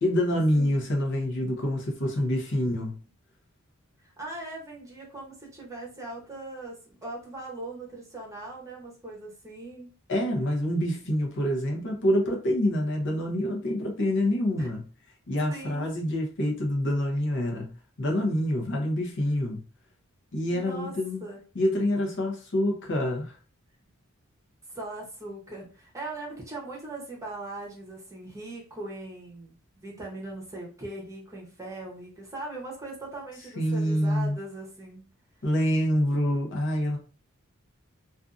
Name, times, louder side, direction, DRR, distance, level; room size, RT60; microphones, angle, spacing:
voice 1, 0.0-3.0 10.1-14.8 15.3-17.7 18.0-19.6 20.3-21.2 21.5-23.4 33.6-34.4 35.4-37.0, left 1 dB, 60° left, 0.7 m, -26 dB
voice 2, 4.0-9.9 14.5-14.7 15.5-15.9 20.5-21.4 24.7-35.1, right 2 dB, 15° right, 0.8 m, -40 dB
2.6 x 2.4 x 2.4 m
head